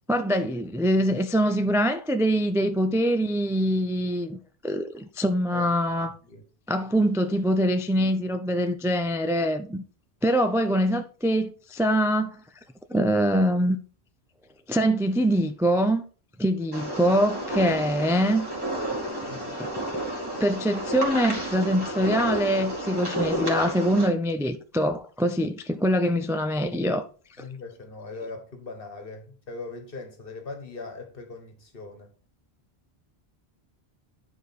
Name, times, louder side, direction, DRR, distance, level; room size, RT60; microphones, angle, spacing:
voice 1, 0.1-6.1 6.7-9.8 10.2-12.4 12.9-13.8 14.7-16.0 16.4-18.5 19.6-19.9 20.4-27.0 27.4-27.5, equal, 5° right, 0.3 m, -24 dB
sound 1, 16.7-24.1, right 1 dB, 20° right, 2.4 m, -31 dB
voice 2, 19.2-19.6 27.4-32.1, left 3 dB, 60° left, 1.7 m, -40 dB
9.3 x 4.8 x 4.2 m
omnidirectional pair, 1.0 m